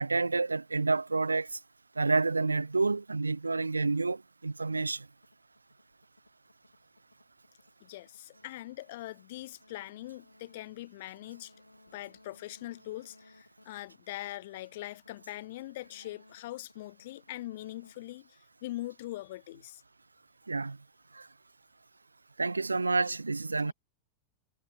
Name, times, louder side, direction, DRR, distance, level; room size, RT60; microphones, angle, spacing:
voice 1, 0.0-1.6 2.0-5.1 20.5-20.8 21.1-21.3 22.4-23.7, right 3 dB, 80° right, 0.4 m, -29 dB
sound 1, 5.1-19.0, left 2 dB, 85° left, 6.4 m, -62 dB
voice 2, 7.8-11.5 11.9-19.8 23.6-23.7, left 16 dB, 55° left, 5.3 m, -42 dB
figure-of-eight pair, 90°, 0 cm